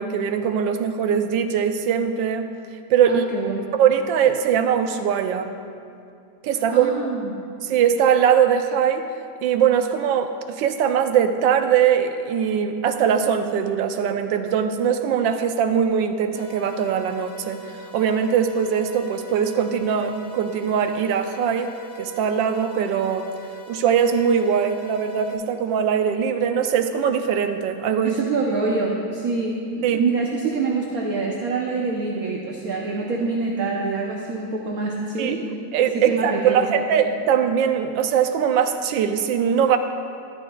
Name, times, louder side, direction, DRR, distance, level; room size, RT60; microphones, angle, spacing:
voice 1, 0.0-2.5 2.9-3.2 3.7-5.5 6.4-7.1 7.6-9.1 9.4-17.6 17.9-21.7 22.0-23.3 23.7-28.2 29.8-30.0 35.2-35.3 35.7-39.8, right 8 dB, 80° right, 7 dB, 1.3 m, -21 dB
voice 2, 3.1-3.6 6.7-7.4 28.0-35.4 35.9-36.7, right 4 dB, 60° right, -1 dB, 1.2 m, -25 dB
sound 1, 16.3-25.3, right 1 dB, 80° left, 1.8 m, -42 dB
13.5 x 12.5 x 2.3 m, 2.4 s
omnidirectional pair, 2.1 m